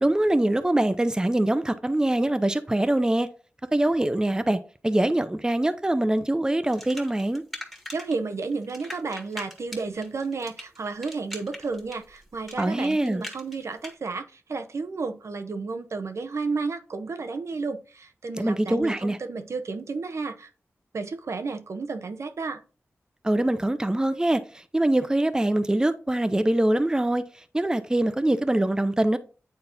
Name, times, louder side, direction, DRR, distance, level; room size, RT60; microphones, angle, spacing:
voice 1, 0.0-3.3 3.7-7.4 12.6-13.2 18.4-19.2 23.2-24.4 24.7-27.2 27.5-29.2, right 1 dB, 15° right, 0.6 m, -23 dB
sound 1, 6.7-8.2 8.4-13.9, equal, ahead, 1.5 m, -40 dB
voice 2, 7.9-20.5 20.9-22.6, right 4 dB, 75° right, 0.6 m, -32 dB
8.9 x 4.1 x 2.6 m
wide cardioid pair, 75°, 5 cm